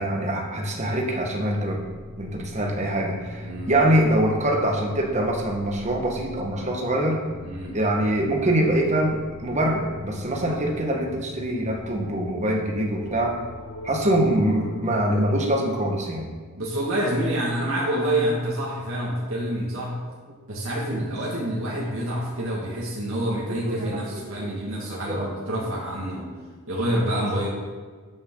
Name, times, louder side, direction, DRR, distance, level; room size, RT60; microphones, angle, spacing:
voice 1, 0.0-1.8 2.2-7.2 7.7-13.4 13.8-16.3 20.3-20.4 20.9-21.0 23.3-25.3 26.2-26.5, right 1 dB, 35° right, 1 dB, 1.5 m, -24 dB
sound 1, 1.0-14.7, left 1 dB, 80° left, 3.3 m, -41 dB
voice 2, 7.4-7.7 16.6-19.9 20.5-26.2 26.7-27.5, right 1 dB, 75° right, -5 dB, 2.1 m, -27 dB
12.5 x 7.1 x 3.9 m, 1.5 s
head